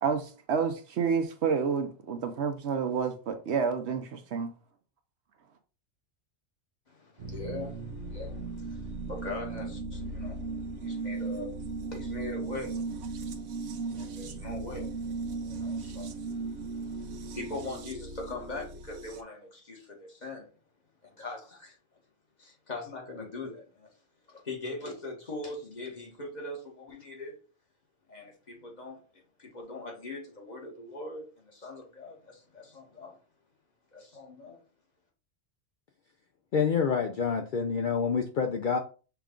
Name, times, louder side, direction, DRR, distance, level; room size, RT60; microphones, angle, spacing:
voice 1, 0.0-4.5, right 6 dB, 70° right, 0.9 m, -29 dB
voice 2, 6.9-11.5 11.9-12.8 13.9-15.0 15.4-20.5 21.0-21.8 22.4-23.9 24.3-27.3 28.1-33.2 33.9-34.6, left 2 dB, 40° left, 1.2 m, -41 dB
sound 1, 7.2-19.2, right 3 dB, 90° right, 1.0 m, -37 dB
voice 3, 36.5-38.8, left 6 dB, 60° left, 0.6 m, -27 dB
5.8 x 2.3 x 3.6 m
omnidirectional pair, 1.2 m